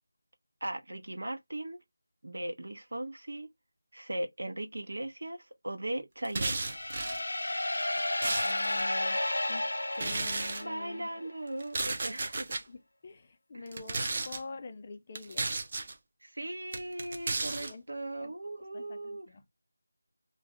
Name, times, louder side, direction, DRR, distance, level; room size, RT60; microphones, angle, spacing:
voice 1, 0.6-1.8 2.2-3.5 3.9-6.6 10.6-12.5 13.5-13.7 16.2-19.3, right 1 dB, 80° right, 1.0 m, -38 dB
sound 1, 6.2-7.2 7.8-8.8 9.9-10.6 11.6-12.6 13.7-14.4 15.1-15.9 16.7-17.7, right 3 dB, 30° right, 0.5 m, -34 dB
sound 2, 6.5-11.2, left 1 dB, 85° left, 0.5 m, -32 dB
voice 2, 8.2-9.2 9.5-11.6 12.7-15.5 17.4-17.8 18.2-18.3 18.7-19.4, left 3 dB, 25° left, 0.4 m, -47 dB
2.5 x 2.0 x 3.5 m
figure-of-eight pair, 175°, 0 cm